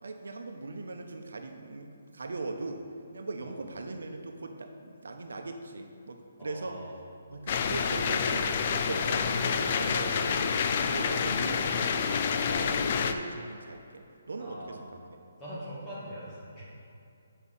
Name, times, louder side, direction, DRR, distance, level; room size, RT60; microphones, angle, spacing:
voice 1, 0.0-6.9 7.3-10.4 10.7-15.0, right 3 dB, 85° right, 5 dB, 0.8 m, -40 dB
voice 2, 6.4-6.9 9.8-10.2 14.4-14.7 15.4-16.6, equal, 10° left, -10 dB, 2.1 m, -42 dB
sound 1, 7.5-13.1, left 6 dB, 30° left, 0.4 m, -28 dB
8.2 x 5.5 x 5.5 m, 2.6 s
hypercardioid pair, 175°, 0 cm